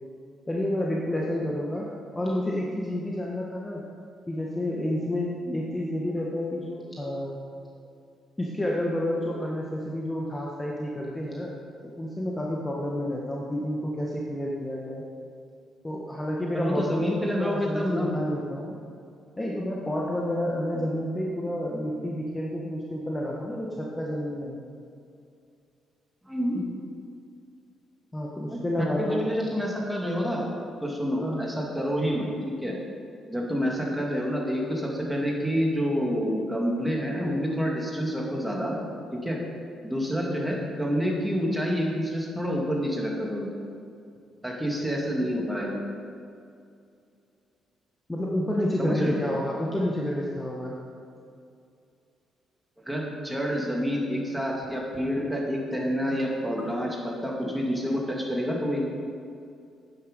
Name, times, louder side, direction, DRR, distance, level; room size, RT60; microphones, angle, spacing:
voice 1, 0.5-1.8 2.1-3.8 4.3-7.4 8.4-11.6 12.0-15.0 15.8-18.7 19.4-24.6 28.1-29.3 31.2-31.4 48.1-50.8, left 1 dB, 15° left, -3 dB, 1.4 m, -30 dB
voice 2, 16.5-18.1 20.7-20.8 26.3-26.6 28.5-30.5 30.8-32.7 33.3-38.8 39.2-39.4 39.8-43.5 44.4-45.8 48.8-49.2 52.8-58.9, equal, 5° right, -2 dB, 2.5 m, -28 dB
10.5 x 9.3 x 5.3 m, 2.5 s
cardioid pair, 90°, 0 cm